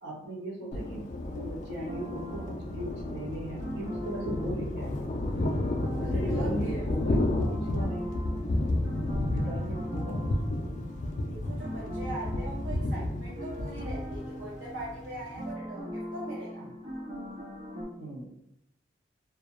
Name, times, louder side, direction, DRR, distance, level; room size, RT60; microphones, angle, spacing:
voice 1, 0.0-5.3 5.9-8.1 9.3-10.3 16.6-16.7 18.0-18.4, right 1 dB, 65° right, -4 dB, 0.9 m, -39 dB
Thunder, 0.7-15.5, left 1 dB, 40° left, 0.3 m, -32 dB
sound 1, 1.9-17.8, equal, 35° right, 0.4 m, -41 dB
voice 2, 6.0-6.9 9.6-9.7 11.3-16.7, right 2 dB, 85° right, -5 dB, 0.6 m, -41 dB
2.3 x 2.0 x 3.0 m, 0.80 s
head